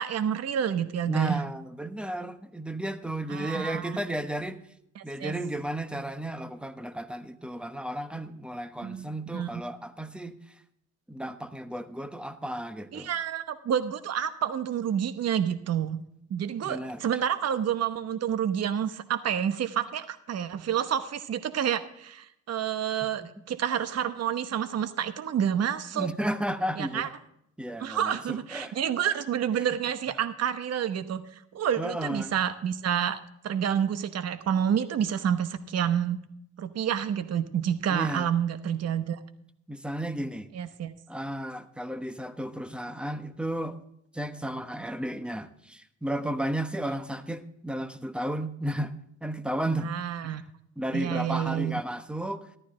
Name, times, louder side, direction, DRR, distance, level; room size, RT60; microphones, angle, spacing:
voice 1, 0.0-1.4 3.3-4.0 5.0-5.3 8.8-9.1 9.3-9.6 12.9-16.0 16.3-26.1 26.8-27.1 27.8-33.2 33.4-36.2 36.6-39.2 40.5-40.9 49.8-50.4 50.9-51.8, right 9 dB, 55° right, 11 dB, 1.0 m, -29 dB
voice 2, 1.1-4.6 5.0-10.4 11.1-13.1 16.6-17.0 23.2-23.3 25.9-27.1 27.6-28.7 29.0-29.1 31.8-32.3 37.9-38.3 39.7-40.5 41.1-43.8 44.1-48.9 49.2-49.9 50.2-50.4 50.8-52.5, right 1 dB, 5° right, 11 dB, 1.1 m, -33 dB
14.0 x 12.0 x 3.8 m, 0.74 s
cardioid pair, 90°, 30 cm